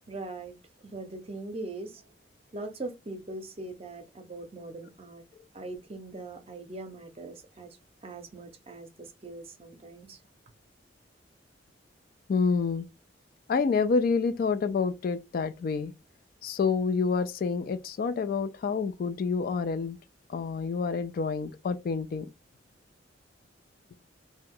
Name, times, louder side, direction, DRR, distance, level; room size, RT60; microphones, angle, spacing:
voice 1, 0.1-0.6 0.8-2.0 2.5-5.2 5.5-7.8 8.0-10.2, right 2 dB, 35° right, 0.6 m, -41 dB
voice 2, 12.3-12.9 13.5-15.9 16.4-20.0 20.3-22.3, left 5 dB, 50° left, 0.3 m, -28 dB
2.8 x 2.1 x 3.7 m
head